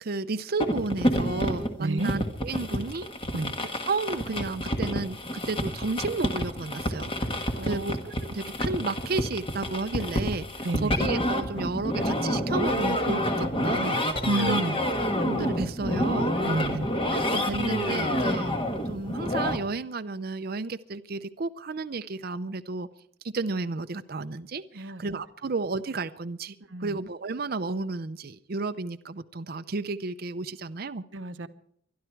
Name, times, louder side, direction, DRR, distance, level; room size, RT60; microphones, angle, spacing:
voice 1, 0.0-3.1 3.9-7.1 7.6-14.0 14.4-14.6 15.2-16.3 17.2-18.5 18.9-22.9 23.3-31.0, right 3 dB, 50° right, 0.6 m, -32 dB
sound 1, 0.6-19.6, equal, 25° left, 1.5 m, -28 dB
voice 2, 1.8-2.1 3.3-3.6 7.5-8.0 10.6-11.0 14.3-14.8 16.4-16.9 24.7-25.2 26.7-27.0 31.1-31.5, right 2 dB, 70° right, 0.9 m, -30 dB
24.5 x 11.5 x 4.6 m
head